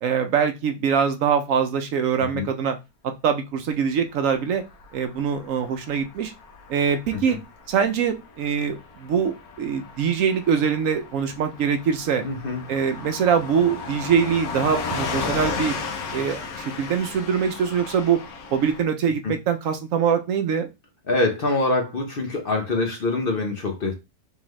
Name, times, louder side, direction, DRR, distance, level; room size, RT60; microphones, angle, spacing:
voice 1, 0.0-2.8 3.0-4.6 4.9-6.3 6.7-7.4 7.7-12.2 12.7-15.7 16.1-18.2 18.5-20.7, right 7 dB, 70° right, 0.9 m, -23 dB
Car passing by / Truck, 4.5-18.8, left 4 dB, 80° left, 1.3 m, -35 dB
voice 2, 12.2-12.6 19.2-19.3 21.1-23.9, left 2 dB, 45° left, 0.8 m, -25 dB
3.6 x 3.3 x 3.1 m
omnidirectional pair, 1.5 m